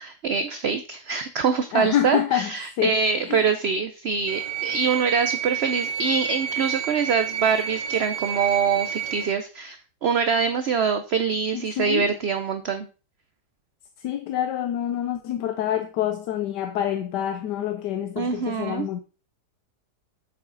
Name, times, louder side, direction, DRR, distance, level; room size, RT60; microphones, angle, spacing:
voice 1, 0.0-9.8 10.0-12.9 18.2-18.9, right 6 dB, 60° right, 0.7 m, -24 dB
voice 2, 1.7-2.5 2.8-2.9 3.2-3.4 11.5-12.1 14.0-19.0, left 11 dB, 80° left, 1.3 m, -26 dB
sound 1, 4.3-9.3, right 9 dB, 85° right, 1.3 m, -29 dB
8.3 x 7.2 x 3.9 m
omnidirectional pair, 1.8 m